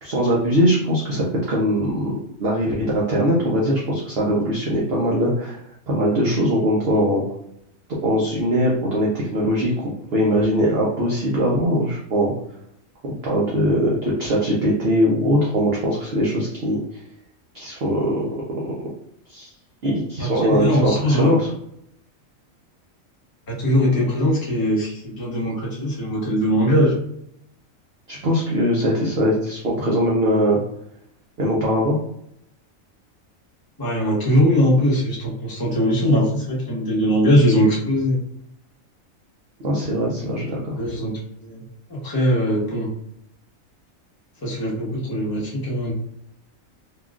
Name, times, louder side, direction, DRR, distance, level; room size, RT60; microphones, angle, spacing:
voice 1, 0.0-2.1 2.4-5.6 5.9-7.2 8.0-9.7 10.1-12.3 13.0-17.0 17.5-18.2 19.3-19.5 19.8-21.5 28.1-30.6 31.4-32.0 39.6-40.8, equal, 55° right, -5 dB, 0.9 m, -21 dB
voice 2, 20.2-21.4 23.5-26.9 33.8-38.2 40.8-41.1 41.4-41.6 41.9-42.9 44.4-45.9, equal, 20° left, -5 dB, 0.8 m, -20 dB
3.6 x 2.4 x 2.4 m, 0.74 s
omnidirectional pair, 1.4 m